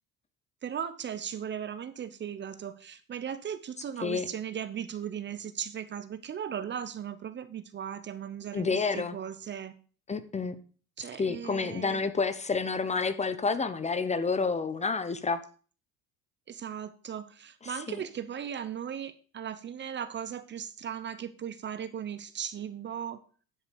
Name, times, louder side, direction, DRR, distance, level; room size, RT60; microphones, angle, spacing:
voice 1, 0.6-9.7 11.0-12.0 16.5-23.2, right 8 dB, 35° right, 13 dB, 0.7 m, -37 dB
voice 2, 8.5-9.2 10.1-10.6 11.2-15.4 17.9-18.0, left 4 dB, 20° left, 12 dB, 0.7 m, -29 dB
9.7 x 5.1 x 5.1 m, 0.41 s
supercardioid pair, 100°, 34 cm